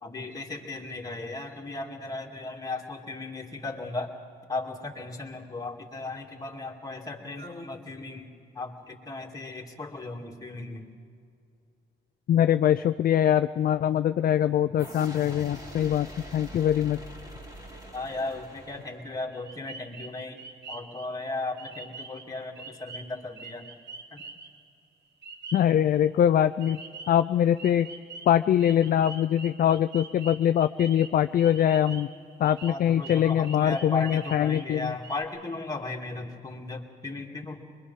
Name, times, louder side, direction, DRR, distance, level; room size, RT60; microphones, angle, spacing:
voice 1, 0.0-4.1 4.5-8.3 8.5-10.9 17.9-20.4 20.7-23.7 24.1-24.2 32.7-37.6, left 2 dB, 20° left, 0 dB, 2.4 m, -36 dB
voice 2, 12.3-16.1 16.3-17.0 25.5-26.8 27.1-27.9 28.3-32.1 32.4-34.9, left 10 dB, 50° left, 11 dB, 0.4 m, -23 dB
sound 1, 14.8-19.5, equal, 20° right, 3.0 m, -44 dB
sound 2, 19.3-21.1 21.6-22.3 22.6-24.6 25.2-25.8 26.6-27.2 27.6-32.2 32.4-34.7 35.0-35.2, right 4 dB, 60° right, 1.7 m, -45 dB
23.0 x 22.5 x 5.6 m, 2.4 s
cardioid pair, 90°, 20 cm